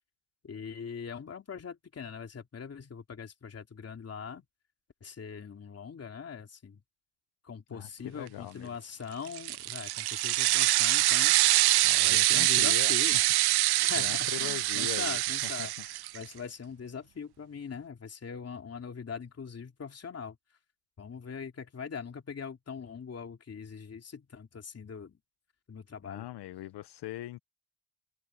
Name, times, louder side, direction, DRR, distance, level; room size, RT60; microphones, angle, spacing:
voice 1, 0.4-4.4 5.0-6.8 7.4-13.2 13.8-20.4 21.0-25.2 25.7-26.3, left 6 dB, 30° left, 3.1 m, -42 dB
voice 2, 7.7-8.7 11.8-13.3 13.6-15.7 26.0-27.4, left 14 dB, 55° left, 0.8 m, -41 dB
sound 1, 9.3-16.2, right 17 dB, 55° right, 0.5 m, -25 dB
cardioid pair, 110°, 47 cm